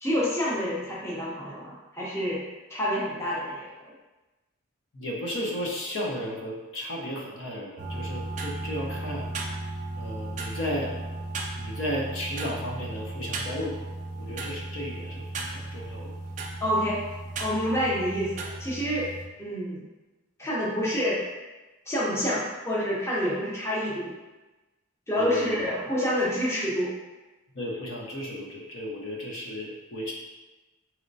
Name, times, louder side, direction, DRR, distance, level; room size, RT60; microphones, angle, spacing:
voice 1, 0.0-2.4 2.7-3.9 16.6-17.1 17.4-19.1 19.4-19.9 20.4-21.2 21.9-24.1 25.1-26.9, equal, 10° left, -6 dB, 0.6 m, -28 dB
voice 2, 4.9-9.3 10.0-11.0 11.6-13.8 14.2-16.1 17.7-17.8 25.2-25.6 27.5-30.1, equal, 60° left, -2 dB, 0.7 m, -34 dB
sound 1, 7.8-19.3, right 2 dB, 35° right, 0.4 m, -35 dB
4.2 x 3.1 x 2.6 m, 1.1 s
head